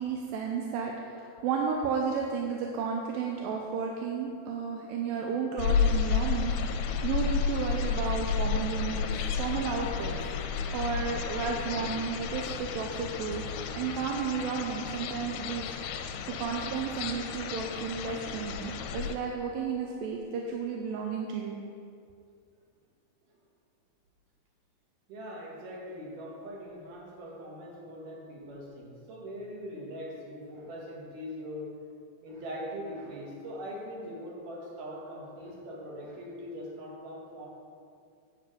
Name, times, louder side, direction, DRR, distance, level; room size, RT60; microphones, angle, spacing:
voice 1, 0.0-9.1 9.4-10.1 10.4-13.4 13.8-15.7 16.3-21.6, right 6 dB, 80° right, 0 dB, 2.3 m, -33 dB
Evening birds light rain dripping gutter, 5.6-19.2, left 6 dB, 80° left, 2.2 m, -32 dB
voice 2, 25.1-31.7 32.2-37.5, equal, 65° right, -3 dB, 3.0 m, -41 dB
9.0 x 4.9 x 7.7 m, 2.4 s
omnidirectional pair, 4.3 m